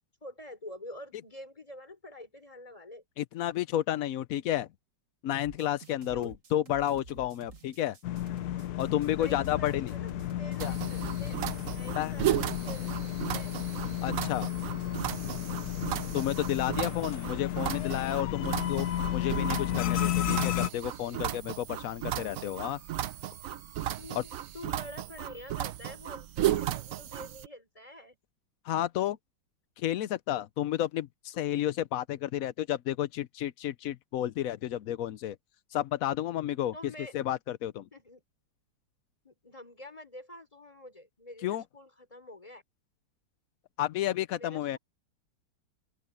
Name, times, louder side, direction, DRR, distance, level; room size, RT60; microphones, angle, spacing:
voice 1, 0.2-3.0 6.1-6.3 9.1-10.1 10.4-11.4 11.7-13.6 16.8-17.0 24.0-28.2 36.7-37.1 37.9-38.2 39.2-42.6 44.4-44.8, left 1 dB, 15° left, 3.6 m, -47 dB
voice 2, 3.2-4.7 5.2-8.0 8.8-9.9 10.6-10.7 12.0-12.2 14.0-14.5 16.1-22.8 24.1-24.2 28.6-29.2 29.8-35.4 35.7-36.7 37.1-37.8 41.4-41.6 43.8-44.8, left 12 dB, 80° left, 0.7 m, -31 dB
sound 1, 5.4-16.8, right 4 dB, 40° right, 2.0 m, -51 dB
sound 2, 8.0-20.7, left 12 dB, 60° left, 1.1 m, -33 dB
sound 3, 10.6-27.5, right 12 dB, 70° right, 0.8 m, -35 dB
open air
omnidirectional pair, 2.2 m